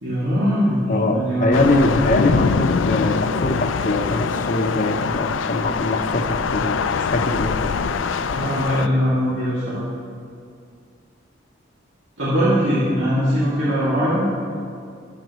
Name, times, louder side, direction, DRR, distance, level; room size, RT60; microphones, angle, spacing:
voice 1, 0.0-0.8 1.1-1.6 8.3-9.8 12.2-14.2, equal, 80° right, -11 dB, 2.6 m, -21 dB
voice 2, 0.9-7.7, left 2 dB, 45° left, 4 dB, 0.8 m, -22 dB
Thunder / Rain, 1.5-8.9, left 5 dB, 90° left, 0.4 m, -23 dB
22.0 x 8.3 x 3.1 m, 2.3 s
head